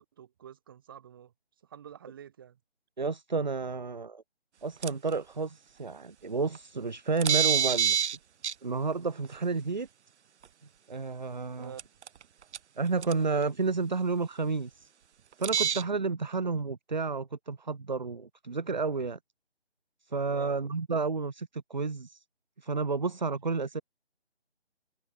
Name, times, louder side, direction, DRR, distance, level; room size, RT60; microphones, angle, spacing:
voice 1, 0.0-1.3 1.6-2.6 11.6-11.8 20.3-20.6, right 9 dB, 20° right, 6.0 m, -48 dB
voice 2, 3.0-4.2 4.6-8.0 8.6-9.9 10.9-11.7 12.8-14.9 15.4-19.2 20.0-22.2 22.6-23.8, right 4 dB, 40° right, 0.7 m, -31 dB
sound 1, 4.8-5.1 6.6-6.7 7.2-8.2 8.4-8.5 10.4-10.5 11.8-12.2 12.5-12.6 13.0-13.1 15.4-15.8, right 8 dB, 90° right, 0.5 m, -26 dB
figure-of-eight pair, 170°, 33 cm